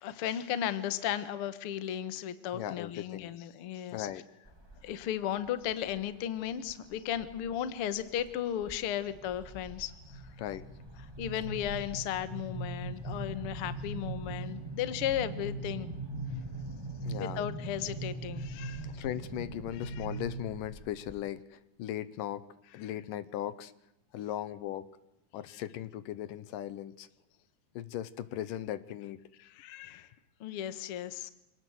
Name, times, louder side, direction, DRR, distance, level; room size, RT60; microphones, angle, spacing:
voice 1, 0.0-4.1 4.8-10.2 11.2-15.9 17.2-18.9 19.8-20.1 25.5-25.6 29.4-30.1 30.4-31.3, left 10 dB, 55° left, 13 dB, 1.8 m, -35 dB
voice 2, 2.5-3.3 3.9-4.3 10.4-10.7 17.0-17.4 18.8-22.5 22.7-23.7 24.1-24.9 25.3-27.1 27.8-29.2, left 12 dB, 75° left, 15 dB, 2.6 m, -38 dB
Subway rubbles overhead, 4.4-5.0 5.5-6.0 6.7-7.5 7.9-8.3 8.6-21.2, right 2 dB, 15° right, 1.1 m, -41 dB
27.0 x 19.0 x 8.1 m, 0.89 s
omnidirectional pair, 3.9 m